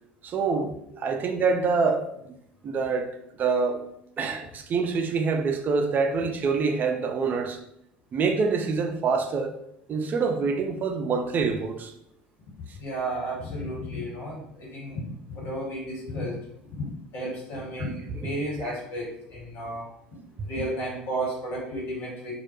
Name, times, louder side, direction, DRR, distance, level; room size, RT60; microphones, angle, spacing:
voice 1, 0.2-0.7 1.0-2.1 2.6-3.1 3.4-3.8 4.2-7.6 8.1-9.5 9.9-11.9 18.6-18.7, right 4 dB, 35° right, 0.4 m, -25 dB
voice 2, 12.8-15.0 15.3-16.4 16.8-19.8 20.5-22.3, right 1 dB, 50° left, 1.2 m, -33 dB
2.2 x 2.1 x 3.0 m
figure-of-eight pair, 65°, 5 cm